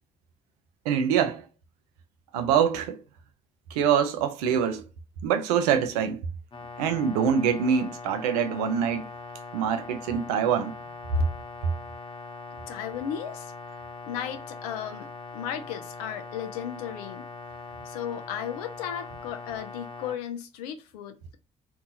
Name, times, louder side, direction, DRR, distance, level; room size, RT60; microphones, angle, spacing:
voice 1, 0.9-1.4 2.3-3.0 3.7-4.8 5.2-6.2 6.8-9.0 9.5-10.7, right 7 dB, 85° right, 0.4 m, -24 dB
sound 1, 6.5-20.2, left 4 dB, 25° left, 0.8 m, -41 dB
voice 2, 12.7-13.5 14.0-17.3 17.9-21.4, left 9 dB, 90° left, 0.4 m, -35 dB
2.6 x 2.3 x 2.7 m
hypercardioid pair, 50°, 19 cm